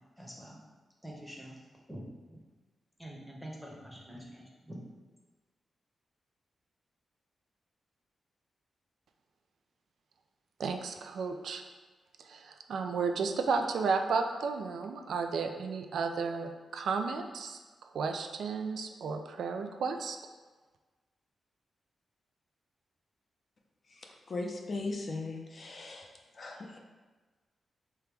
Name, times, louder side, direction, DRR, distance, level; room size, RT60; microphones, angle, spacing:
voice 1, 0.2-0.6 1.0-1.6 1.9-2.0 2.3-2.4 3.0-4.7, equal, ahead, -3 dB, 0.8 m, -46 dB
voice 2, 10.6-11.6 12.2-17.6 17.9-20.2, right 5 dB, 80° right, 5 dB, 0.3 m, -33 dB
voice 3, 24.3-26.1 26.4-26.8, left 3 dB, 40° left, 1 dB, 0.5 m, -38 dB
3.4 x 2.9 x 4.6 m, 1.3 s
wide cardioid pair, 145°, 0 cm